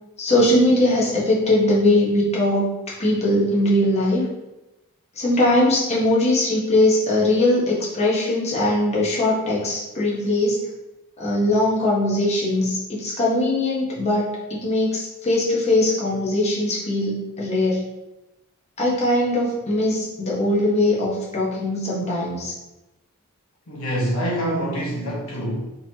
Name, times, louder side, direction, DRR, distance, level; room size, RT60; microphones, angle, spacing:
voice 1, 0.2-2.6 3.0-4.2 5.2-10.6 11.2-17.8 18.8-22.5, left 1 dB, 30° left, -5 dB, 1.0 m, -20 dB
voice 2, 23.7-25.6, right 1 dB, 70° left, -4 dB, 1.1 m, -25 dB
4.0 x 3.0 x 2.8 m, 1.0 s
head